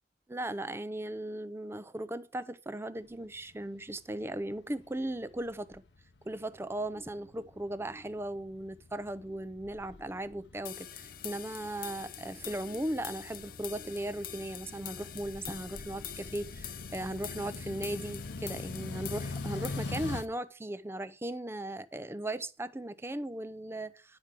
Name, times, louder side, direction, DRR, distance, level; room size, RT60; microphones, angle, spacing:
voice 1, 0.3-5.8 6.2-24.2, right 1 dB, 15° right, 0.6 m, -37 dB
sound 1, 3.2-20.2, left 3 dB, 85° left, 0.9 m, -44 dB
sound 2, 10.7-20.3, left 10 dB, 55° left, 0.8 m, -45 dB
10.5 x 4.7 x 7.4 m
head